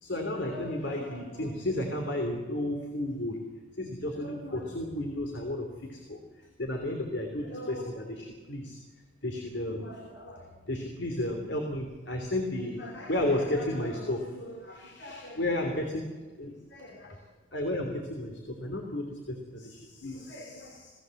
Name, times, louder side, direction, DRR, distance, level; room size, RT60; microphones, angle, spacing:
voice 1, 0.0-3.4 3.8-6.2 6.6-8.8 9.2-17.2 17.5-20.9, left 1 dB, 65° left, 3 dB, 3.2 m, -33 dB
28.0 x 17.5 x 7.8 m, 1.3 s
head